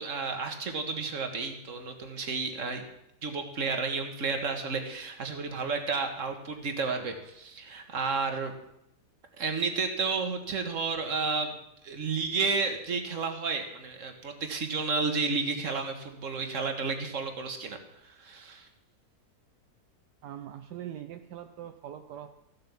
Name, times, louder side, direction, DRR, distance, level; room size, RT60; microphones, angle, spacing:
voice 1, 0.0-2.8 3.2-8.5 9.4-11.6 11.8-17.8 18.0-18.7, right 4 dB, 50° right, 5 dB, 1.9 m, -31 dB
voice 2, 20.2-22.3, right 10 dB, 75° right, 7 dB, 1.3 m, -42 dB
15.0 x 7.8 x 7.2 m, 0.81 s
omnidirectional pair, 1.8 m